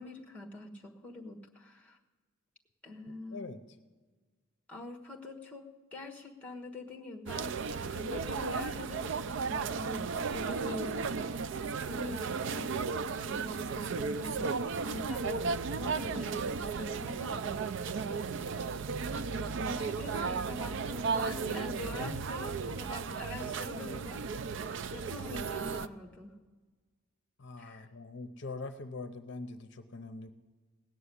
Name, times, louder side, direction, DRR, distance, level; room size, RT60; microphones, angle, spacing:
voice 1, 0.0-2.0 2.8-3.5 4.7-11.4 11.9-17.4 17.9-18.2 19.0-24.3 24.7-26.4 27.6-27.9, left 2 dB, 5° left, 1 dB, 1.2 m, -44 dB
sound 1, 7.3-25.9, right 5 dB, 55° right, 0.4 m, -35 dB
voice 2, 27.4-30.3, left 3 dB, 55° left, 8 dB, 0.7 m, -43 dB
17.5 x 6.9 x 9.8 m, 1.4 s
head